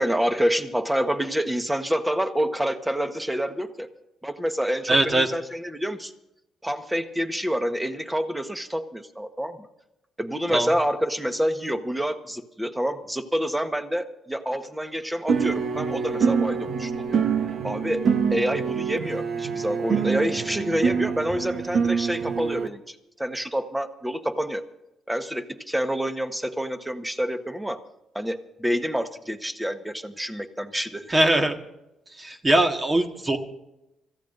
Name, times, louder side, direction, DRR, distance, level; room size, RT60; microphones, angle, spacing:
voice 1, 0.0-3.9 4.2-6.1 6.6-9.7 10.2-17.2 17.6-18.0 18.3-24.6 25.1-27.8 28.1-31.2, equal, 5° right, 7 dB, 1.3 m, -27 dB
voice 2, 4.9-5.3 10.5-10.7 31.1-31.6 32.2-33.4, right 1 dB, 25° right, 4 dB, 1.7 m, -21 dB
sound 1, 15.3-22.7, right 6 dB, 60° right, 1.1 m, -25 dB
27.0 x 15.0 x 2.7 m, 0.90 s
cardioid pair, 90°, 0 cm